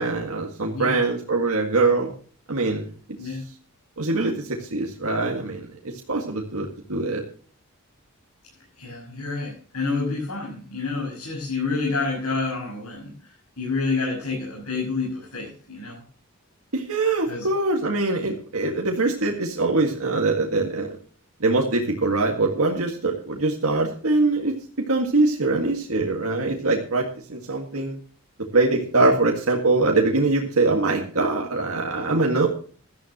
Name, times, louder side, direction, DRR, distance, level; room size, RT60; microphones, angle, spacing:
voice 1, 0.0-2.1 2.5-2.9 4.0-7.2 16.7-21.0 21.4-24.5 24.9-28.0 28.5-32.5, right 3 dB, 75° right, 0 dB, 1.9 m, -23 dB
voice 2, 8.8-13.1 13.6-16.0 17.3-17.5 29.0-29.1, left 3 dB, 80° left, -4 dB, 6.6 m, -28 dB
16.5 x 13.0 x 3.0 m, 0.42 s
head